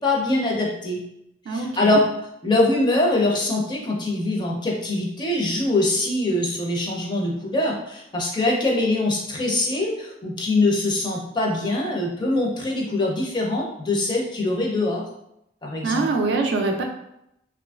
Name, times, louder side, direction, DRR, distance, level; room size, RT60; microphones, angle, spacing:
voice 1, 0.0-1.0 1.5-2.0 2.4-15.0 15.6-16.1, left 2 dB, 25° left, -1 dB, 0.5 m, -23 dB
voice 2, 1.5-2.0 15.8-16.8, right 3 dB, 65° right, 2 dB, 0.3 m, -24 dB
3.0 x 2.4 x 2.3 m, 0.80 s
head